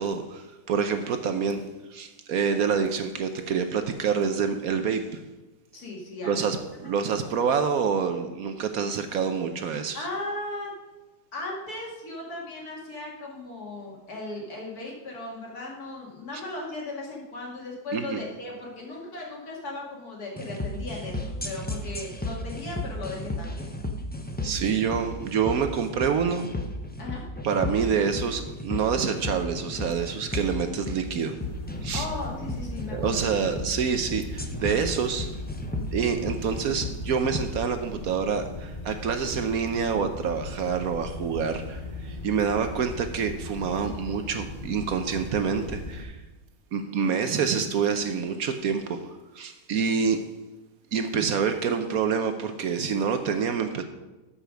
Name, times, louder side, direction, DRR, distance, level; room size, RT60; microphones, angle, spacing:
voice 1, 0.0-5.2 6.3-6.6 6.8-10.0 17.9-18.2 24.4-26.5 27.4-31.3 31.8-32.1 32.9-35.3 35.9-46.2 46.7-50.2 50.9-53.8, right 6 dB, 65° right, 7 dB, 1.1 m, -27 dB
voice 2, 5.7-6.5 6.8-6.9 9.9-10.7 11.3-23.7 27.0-27.2 31.9-33.2 47.0-47.2, left 2 dB, 65° left, -2 dB, 2.8 m, -37 dB
sound 1, 20.4-37.5, left 1 dB, 10° left, 0.4 m, -34 dB
sound 2, 31.4-46.1, left 2 dB, 35° left, 1.2 m, -38 dB
13.0 x 5.8 x 5.1 m, 1.1 s
omnidirectional pair, 1.8 m